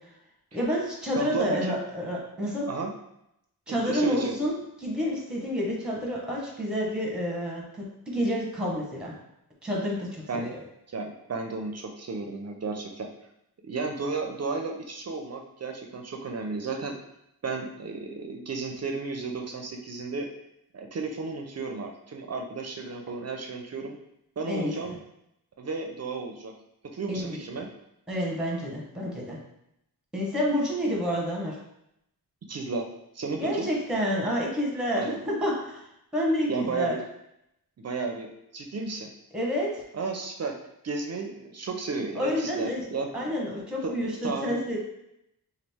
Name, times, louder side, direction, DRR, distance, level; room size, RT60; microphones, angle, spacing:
voice 1, 0.5-2.7 3.7-7.8 8.1-9.1 9.6-10.6 24.5-24.8 27.1-27.4 28.1-29.4 30.1-31.6 33.4-35.8 36.1-37.0 39.3-39.8 42.1-42.8 43.1-44.8, equal, ahead, -2 dB, 0.8 m, -29 dB
voice 2, 1.2-1.8 2.7-2.9 3.7-4.4 10.3-10.5 10.9-13.1 13.6-17.0 17.4-20.3 20.7-24.0 24.4-25.0 25.6-26.5 26.8-27.7 32.5-32.9 33.1-33.7 34.9-35.2 36.5-37.0 37.8-39.1 39.9-40.5 40.8-43.1 43.8-43.9 44.2-44.6, right 4 dB, 45° right, 3 dB, 0.4 m, -33 dB
3.0 x 2.4 x 3.4 m, 0.80 s
wide cardioid pair, 95°, 38 cm